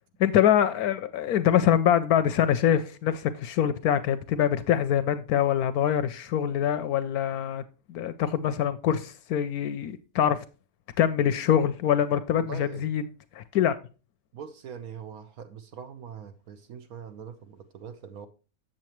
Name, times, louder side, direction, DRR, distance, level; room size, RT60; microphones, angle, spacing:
voice 1, 0.2-7.6 7.9-10.4 11.0-13.0 13.3-13.8, left 9 dB, 70° left, 1.0 m, -24 dB
voice 2, 12.3-12.9 14.3-18.3, right 7 dB, 65° right, 1.2 m, -42 dB
7.6 x 7.4 x 3.0 m
omnidirectional pair, 1.8 m